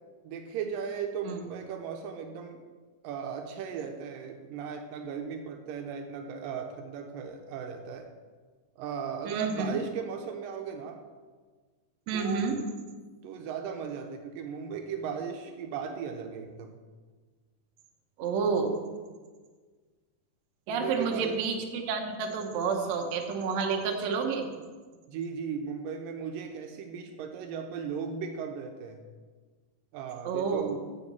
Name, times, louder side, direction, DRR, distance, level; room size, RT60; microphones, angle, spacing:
voice 1, 0.2-2.6 3.0-8.1 8.8-11.0 12.1-12.6 13.2-16.8 20.7-21.4 25.1-29.0 29.9-30.8, right 7 dB, 80° right, 4 dB, 2.3 m, -37 dB
voice 2, 9.3-9.8 12.1-12.6 18.2-18.8 20.7-24.5 30.3-30.7, right 5 dB, 65° right, 2 dB, 2.0 m, -29 dB
7.2 x 7.0 x 7.0 m, 1.4 s
omnidirectional pair, 4.0 m